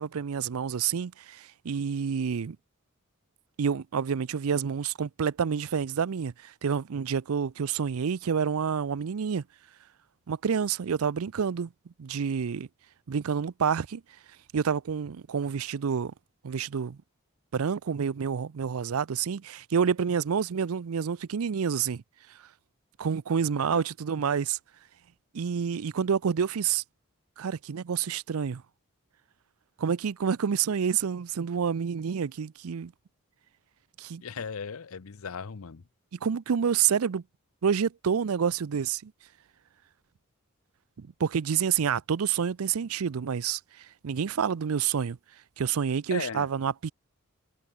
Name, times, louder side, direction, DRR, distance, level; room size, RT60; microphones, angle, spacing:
voice 1, 0.0-2.6 3.6-9.4 10.3-11.7 12.0-12.7 13.1-14.0 14.5-16.1 16.4-17.0 17.5-22.0 23.0-24.6 25.3-26.8 27.4-28.6 29.8-32.9 34.0-34.2 36.2-37.2 37.6-39.1 41.0-45.2 45.6-46.9, right 7 dB, 90° right, 0.5 m, -28 dB
voice 2, 34.2-35.9 46.1-46.5, left 6 dB, 80° left, 0.7 m, -36 dB
head